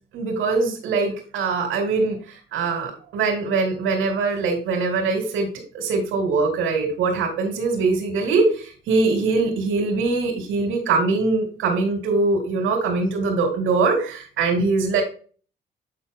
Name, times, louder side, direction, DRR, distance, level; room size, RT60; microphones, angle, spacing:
voice 1, 0.1-2.2 2.5-5.5 5.7-15.0, right 3 dB, 90° right, 0 dB, 2.6 m, -22 dB
8.9 x 4.4 x 3.7 m, 0.40 s
cardioid pair, 90°, 20 cm